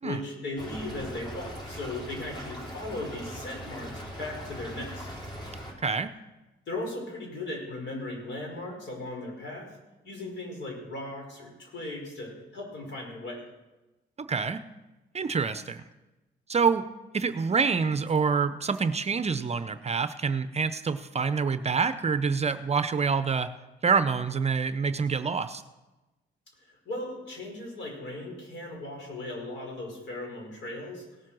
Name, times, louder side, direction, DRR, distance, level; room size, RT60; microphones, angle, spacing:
voice 1, 0.0-5.1 6.7-9.7 10.0-13.4 26.7-31.0, left 2 dB, 65° left, 0 dB, 5.3 m, -37 dB
Stream / Trickle dribble, 0.6-5.7, equal, 25° left, 3.5 m, -40 dB
voice 2, 5.8-6.1 14.3-14.6 15.1-15.8 16.5-16.8 17.1-23.5 23.8-25.6, right 5 dB, 35° right, 12 dB, 0.6 m, -26 dB
18.0 x 7.4 x 6.2 m, 1.1 s
cardioid pair, 90°, 20 cm